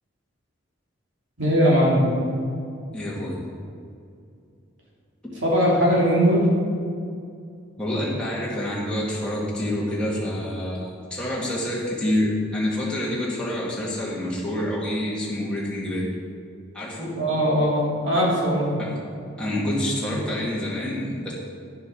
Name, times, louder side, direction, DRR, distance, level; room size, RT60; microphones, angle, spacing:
voice 1, 1.4-2.0 5.4-6.5 17.1-18.7 20.1-20.2, equal, 60° right, -5 dB, 3.0 m, -20 dB
voice 2, 2.9-3.4 7.8-16.0 16.7-17.1 18.8-18.9 19.4-21.3, left 1 dB, 5° left, -7 dB, 1.9 m, -27 dB
10.0 x 7.2 x 6.1 m, 2.4 s
head